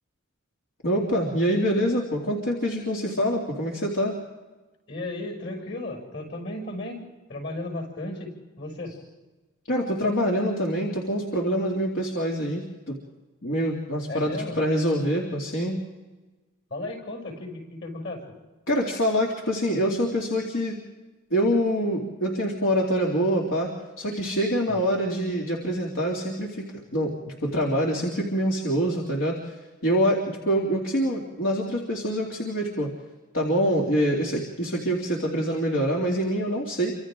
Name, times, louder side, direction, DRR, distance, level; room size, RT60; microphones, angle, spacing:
voice 1, 0.8-4.2 9.7-13.0 13.4-15.8 18.7-20.8 21.3-23.7 24.0-29.6 29.8-32.9 33.3-36.9, equal, 75° left, -2 dB, 2.8 m, -25 dB
voice 2, 4.9-9.0 14.1-14.6 16.7-18.3 24.7-24.9, left 2 dB, 55° left, 3 dB, 6.7 m, -35 dB
29.0 x 26.0 x 3.8 m, 1.2 s
head